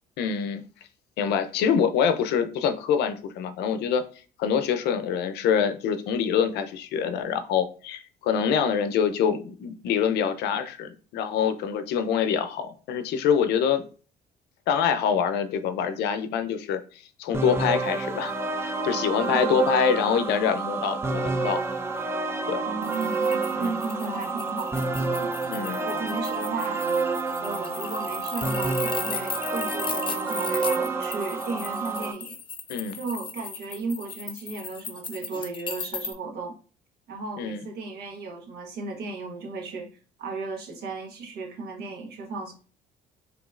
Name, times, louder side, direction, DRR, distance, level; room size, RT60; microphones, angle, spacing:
voice 1, 0.2-0.6 1.2-4.0 4.4-13.8 14.7-18.3 18.6-21.6 22.5-22.6 23.6-23.7 25.5-25.8 32.7-33.0 37.4-37.6, left 7 dB, 80° left, 9 dB, 0.6 m, -25 dB
sound 1, 17.3-32.1, right 3 dB, 15° right, 0.6 m, -29 dB
voice 2, 19.3-19.9 22.6-26.8 27.4-32.4 32.9-36.5 37.1-39.9 40.2-42.5, right 3 dB, 75° right, 2 dB, 1.3 m, -35 dB
sound 2, 22.8-36.1, left 5 dB, 30° left, 0.6 m, -37 dB
5.1 x 2.9 x 2.4 m, 0.38 s
cardioid pair, 110°, 17 cm